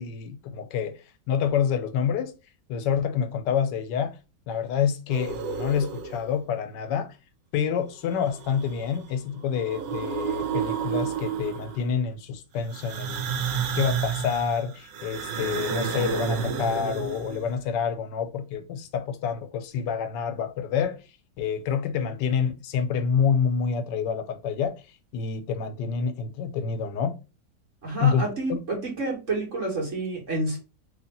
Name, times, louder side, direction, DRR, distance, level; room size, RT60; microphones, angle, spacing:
voice 1, 0.0-2.3 2.7-4.2 4.5-7.2 7.5-13.3 13.7-21.0 21.4-24.8 25.1-27.2 28.0-28.2 28.5-28.6, left 7 dB, 85° left, 1.2 m, -27 dB
sound 1, 5.1-6.4 8.1-9.0 9.4-11.9 12.7-17.6, right 7 dB, 85° right, 1.2 m, -31 dB
voice 2, 27.8-30.6, right 2 dB, 50° right, 1.6 m, -29 dB
3.2 x 2.7 x 4.1 m
omnidirectional pair, 1.9 m